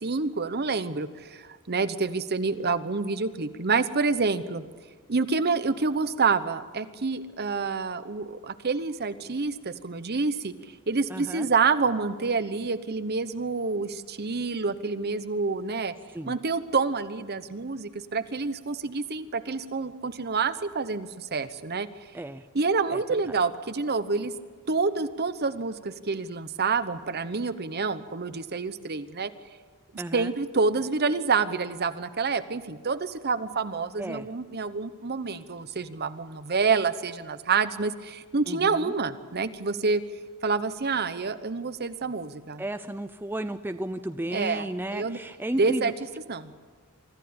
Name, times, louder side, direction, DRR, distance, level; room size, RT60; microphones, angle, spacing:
voice 1, 0.0-4.6 5.1-10.5 10.9-15.9 16.3-21.9 22.5-24.3 24.7-29.3 29.9-40.0 40.4-42.6 44.3-44.7 44.9-45.2 45.6-45.9 46.3-46.5, right 4 dB, 50° right, 12 dB, 0.9 m, -28 dB
voice 2, 11.1-11.5 16.1-16.3 22.1-22.4 22.9-23.0 30.0-30.3 34.0-34.3 38.5-38.9 42.6-45.9, right 1 dB, 10° right, 9 dB, 0.5 m, -33 dB
25.0 x 14.0 x 8.7 m, 1.5 s
head